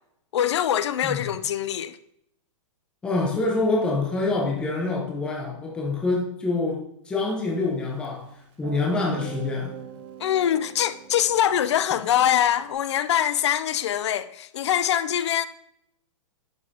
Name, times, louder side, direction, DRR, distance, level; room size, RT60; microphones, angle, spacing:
voice 1, 0.3-2.0 10.2-15.5, left 10 dB, 55° left, 0.4 m, -23 dB
voice 2, 3.0-8.3 8.6-9.7, left 3 dB, 5° left, 0.8 m, -26 dB
Guitar, 8.0-8.1 8.6-12.7, right 8 dB, 20° right, 0.4 m, -42 dB
11.0 x 5.5 x 2.8 m
hypercardioid pair, 180°, 17 cm